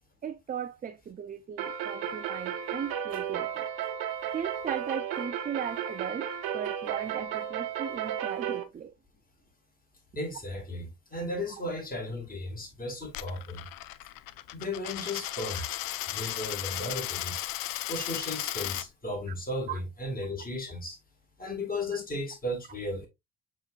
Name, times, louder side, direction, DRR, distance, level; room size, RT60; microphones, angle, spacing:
voice 1, 0.2-3.7 4.3-6.3 6.5-8.9 15.5-15.6 19.7-19.8, right 8 dB, 25° right, 0.4 m, -37 dB
sound 1, 1.6-8.6, right 9 dB, 70° right, 1.1 m, -34 dB
voice 2, 10.1-13.7 14.5-15.6 16.1-17.4 17.9-21.0 21.4-23.1, left 1 dB, 20° left, 2.0 m, -35 dB
Coin (dropping), 13.0-18.9, left 15 dB, 65° left, 0.5 m, -35 dB
7.3 x 2.9 x 2.4 m
supercardioid pair, 65°, 38 cm